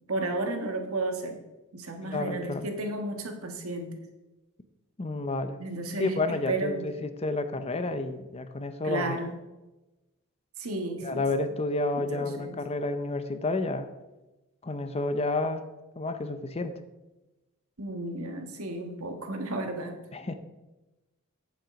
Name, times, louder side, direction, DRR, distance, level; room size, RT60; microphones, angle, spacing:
voice 1, 0.1-1.4 1.7-4.0 5.6-6.8 8.8-9.3 10.6-11.2 11.9-12.6 17.8-20.0, right 2 dB, 75° right, 5 dB, 1.5 m, -33 dB
voice 2, 2.1-2.7 5.0-5.6 6.0-9.2 11.0-13.9 14.6-15.6 16.0-16.8 20.1-20.3, left 2 dB, 30° left, 10 dB, 0.6 m, -30 dB
9.0 x 7.3 x 5.2 m, 1.1 s
head